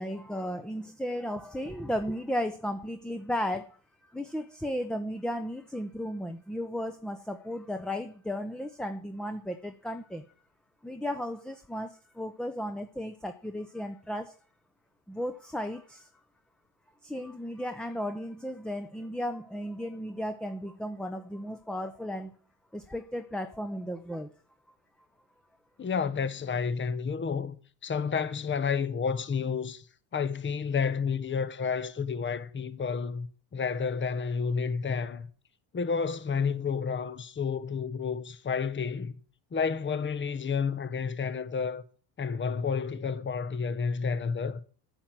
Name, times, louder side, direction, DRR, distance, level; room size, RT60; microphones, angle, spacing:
voice 1, 0.0-3.8 4.1-10.3 10.8-14.3 15.1-16.1 17.0-22.3 22.7-24.3, equal, ahead, 0.8 m, -35 dB
voice 2, 25.8-27.6 27.8-29.8 30.1-35.3 35.7-39.1 39.5-41.8 42.2-44.6, left 6 dB, 25° left, 1.1 m, -30 dB
9.1 x 8.9 x 7.6 m
supercardioid pair, 90°, 47 cm